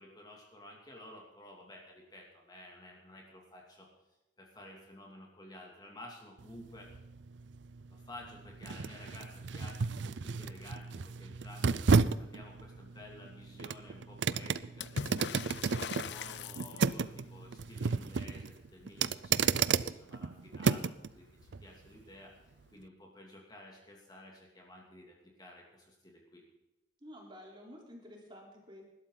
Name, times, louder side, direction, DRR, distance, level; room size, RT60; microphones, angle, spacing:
voice 1, 0.0-3.9 4.4-6.9 7.9-19.6 19.8-22.3 22.7-26.4, left 1 dB, 20° left, -1 dB, 2.6 m, -52 dB
sound 1, 6.4-21.1 21.5-21.7, right 5 dB, 75° right, 0.5 m, -33 dB
Water / Splash splatter, 14.8-17.2 20.5-20.6 20.8-21.6 22.7-22.8, left 6 dB, 65° left, 0.5 m, -41 dB
voice 2, 27.0-28.8, equal, 25° right, -1 dB, 3.8 m, -51 dB
19.5 x 12.5 x 4.0 m, 0.97 s
head